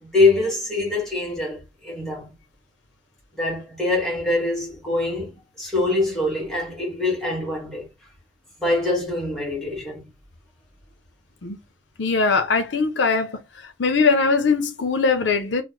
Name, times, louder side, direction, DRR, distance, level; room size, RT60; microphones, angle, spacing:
voice 1, 0.0-2.3 3.3-7.9 8.6-10.1, left 2 dB, ahead, 1.5 m, -24 dB
voice 2, 12.0-13.4 13.8-15.6, left 4 dB, 85° left, 0.6 m, -20 dB
3.2 x 2.1 x 3.6 m
head